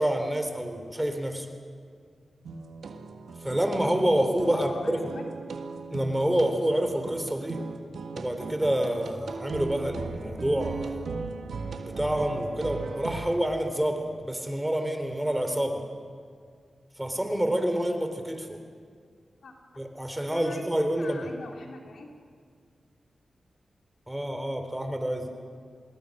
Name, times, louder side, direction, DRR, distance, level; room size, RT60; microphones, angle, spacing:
voice 1, 0.0-1.5 3.4-5.1 5.9-7.6 8.2-11.0 11.9-15.8 17.0-18.6 19.8-21.3 24.1-25.3, right 1 dB, 10° right, 6 dB, 3.7 m, -27 dB
sound 1, 2.4-13.4, right 4 dB, 85° right, 1.7 m, -38 dB
voice 2, 4.5-5.2 19.4-19.8 20.2-22.1, left 3 dB, 80° left, 2 dB, 2.9 m, -43 dB
27.0 x 20.5 x 6.5 m, 2.1 s
cardioid pair, 50°, 0 cm